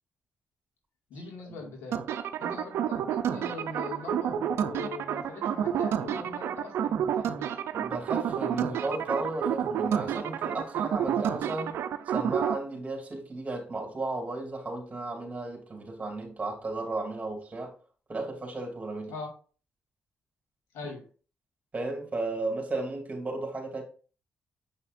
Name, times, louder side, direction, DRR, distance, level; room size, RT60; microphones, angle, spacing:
voice 1, 1.1-2.1 2.4-7.6 19.1-19.3 20.7-21.1, left 4 dB, 90° left, 2.0 m, -41 dB
sound 1, 1.9-12.6, right 9 dB, 80° right, 0.6 m, -30 dB
voice 2, 7.7-11.8 12.1-17.7 18.1-19.1 20.8-20.9 21.7-23.8, right 2 dB, 35° right, 2.7 m, -34 dB
7.5 x 5.6 x 2.6 m
cardioid pair, 70°, 4 cm